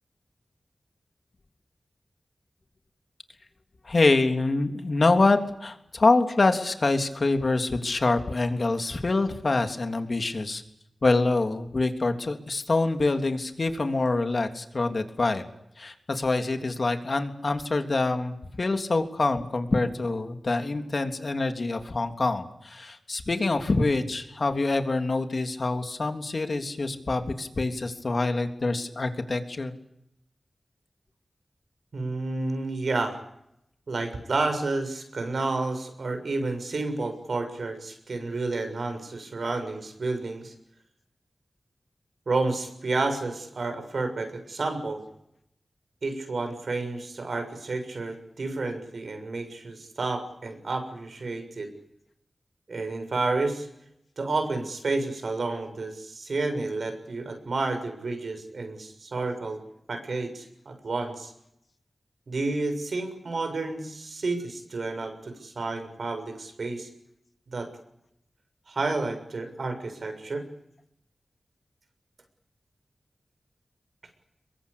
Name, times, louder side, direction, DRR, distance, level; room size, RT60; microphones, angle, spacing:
voice 1, 3.8-10.6 11.0-15.5 15.8-29.7, left 3 dB, 60° left, 6 dB, 3.3 m, -25 dB
voice 2, 31.9-33.1 33.9-40.5 42.3-45.0 46.0-51.7 52.7-53.7 54.2-59.6 59.9-61.3 62.3-66.9 67.5-67.7 68.7-70.5, right 3 dB, 80° right, 7 dB, 6.7 m, -30 dB
27.5 x 23.0 x 8.5 m, 0.78 s
wide cardioid pair, 65°, 0 cm